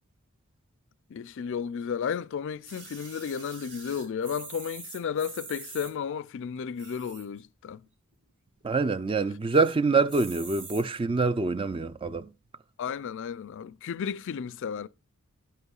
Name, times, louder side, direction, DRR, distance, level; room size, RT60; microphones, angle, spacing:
voice 1, 1.1-7.8 12.8-14.9, left 7 dB, 60° left, 0.3 m, -33 dB
sound 1, 2.7-5.9 6.7-7.4 7.9-8.0 8.1-8.2 8.6-9.0 9.5-9.7 10.1-10.8 11.6-11.7, right 4 dB, 55° right, 2.2 m, -44 dB
voice 2, 8.6-12.3, right 4 dB, 25° right, 0.4 m, -25 dB
11.5 x 8.1 x 2.4 m
head